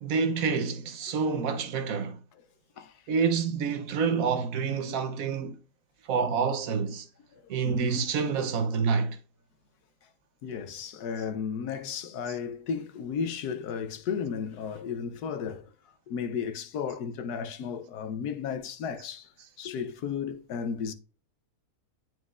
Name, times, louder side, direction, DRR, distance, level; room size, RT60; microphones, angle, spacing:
voice 1, 0.0-2.2 3.1-5.6 6.1-7.1 7.5-9.2, right 5 dB, 65° right, 1.1 m, -28 dB
voice 2, 7.3-8.1 10.4-15.7 16.1-19.3 19.6-20.9, left 6 dB, 80° left, 1.3 m, -34 dB
9.4 x 4.5 x 2.4 m
omnidirectional pair, 1.7 m